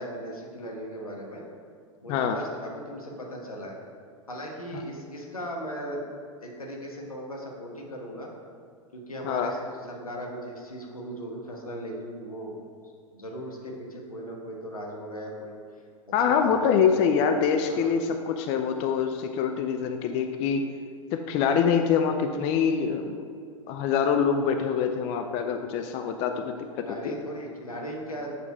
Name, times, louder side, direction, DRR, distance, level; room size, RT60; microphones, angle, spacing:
voice 1, 0.0-1.4 2.0-3.8 4.3-6.0 6.4-8.3 8.9-12.6 12.8-15.5 16.3-16.9 17.6-17.9 26.8-28.3, equal, 90° left, -1 dB, 1.1 m, -38 dB
voice 2, 16.1-20.6 21.1-23.2 23.7-27.1, left 7 dB, 35° left, 5 dB, 0.4 m, -25 dB
7.0 x 3.2 x 4.6 m, 2.3 s
figure-of-eight pair, 95°, 18 cm